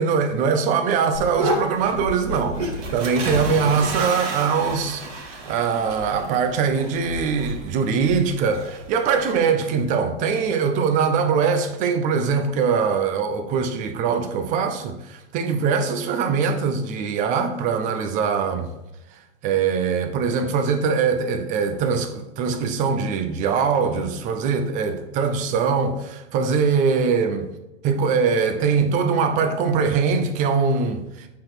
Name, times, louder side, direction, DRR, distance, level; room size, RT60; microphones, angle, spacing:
voice 1, 0.0-18.7 19.4-27.5 27.8-31.3, right 5 dB, 20° right, 0.6 m, -22 dB
sound 1, 1.1-9.4, right 1 dB, 65° right, 2.3 m, -31 dB
8.4 x 4.0 x 4.5 m
hypercardioid pair, 135°, 37 cm